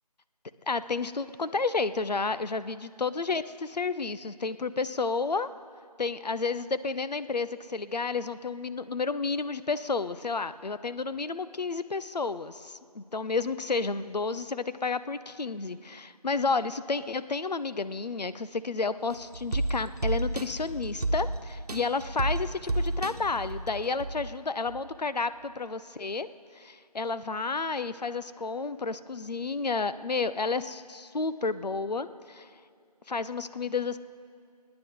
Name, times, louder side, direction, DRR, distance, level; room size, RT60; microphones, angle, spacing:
voice 1, 0.7-5.5 6.0-26.3 26.6-32.5 33.1-34.0, left 4 dB, 80° left, 13 dB, 0.6 m, -31 dB
sound 1, 19.1-24.3 24.7-24.8, right 2 dB, 70° right, 1.1 m, -31 dB
28.0 x 9.8 x 3.9 m, 2.4 s
figure-of-eight pair, 170°, 21 cm